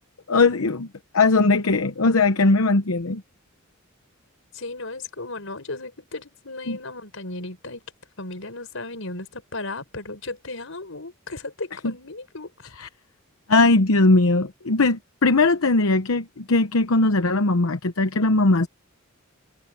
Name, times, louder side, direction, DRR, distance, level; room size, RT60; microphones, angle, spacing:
voice 1, 0.3-0.9 1.1-3.2 6.7-6.8 11.8-11.9 12.8-12.9 13.5-18.7, left 3 dB, 90° left, 0.9 m, -19 dB
voice 2, 4.5-7.8 8.2-12.7, left 2 dB, 70° left, 5.5 m, -35 dB
head